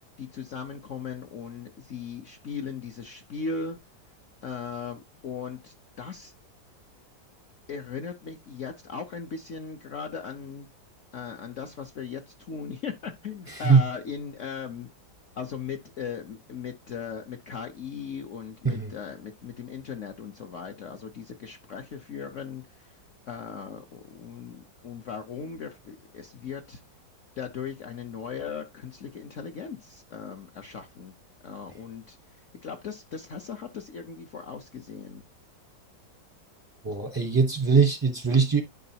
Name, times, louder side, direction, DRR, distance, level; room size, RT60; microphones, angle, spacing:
voice 1, 0.2-3.8 4.4-6.3 7.7-10.7 11.1-14.9 15.4-22.9 23.2-26.8 27.4-31.1 31.4-32.2 32.6-35.2, left 6 dB, 55° left, 1.0 m, -38 dB
voice 2, 13.5-13.8 18.6-18.9 36.8-38.6, right 5 dB, 20° right, 0.6 m, -21 dB
11.0 x 5.2 x 2.8 m
omnidirectional pair, 1.9 m